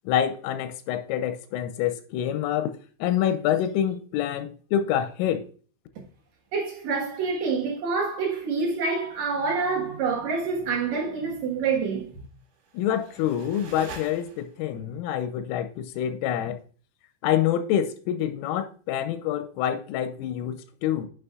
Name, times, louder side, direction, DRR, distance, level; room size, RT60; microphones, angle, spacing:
voice 1, 0.1-2.7 3.0-5.4 12.7-16.6 17.2-21.1, left 10 dB, 90° left, 3.3 m, -26 dB
voice 2, 6.5-12.2, right 4 dB, 85° right, 1.6 m, -27 dB
sound 1, 12.4-14.8, right 4 dB, 60° right, 2.6 m, -45 dB
9.6 x 6.1 x 2.4 m
omnidirectional pair, 5.7 m